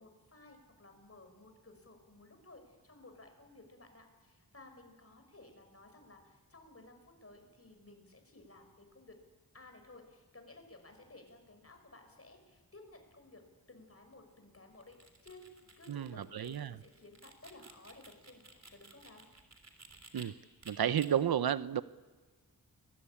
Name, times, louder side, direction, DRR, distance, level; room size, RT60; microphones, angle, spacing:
voice 1, 0.0-9.1 9.5-13.4 13.7-19.2, left 2 dB, 40° left, 5 dB, 5.5 m, -56 dB
sound 1, 14.7-20.3 20.6-21.1, right 3 dB, 45° right, 3.5 m, -56 dB
voice 2, 15.9-16.7 20.1-20.3 20.7-21.8, right 9 dB, 85° right, 15 dB, 0.8 m, -32 dB
29.5 x 21.5 x 8.7 m, 1.3 s
wide cardioid pair, 65°, 36 cm